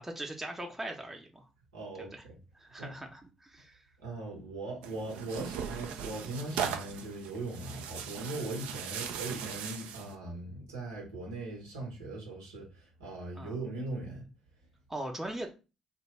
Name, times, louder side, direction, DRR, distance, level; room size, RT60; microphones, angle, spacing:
voice 1, 0.0-1.5 2.0-2.2 2.5-3.8 13.3-13.5 14.9-15.5, right 1 dB, 15° right, 0.7 m, -40 dB
voice 2, 1.7-2.4 2.8-2.9 4.0-14.3, right 2 dB, 90° right, 1.0 m, -40 dB
Tearing, 4.8-10.1, right 8 dB, 70° right, 0.4 m, -39 dB
2.6 x 2.2 x 3.2 m
hypercardioid pair, 50°, 2 cm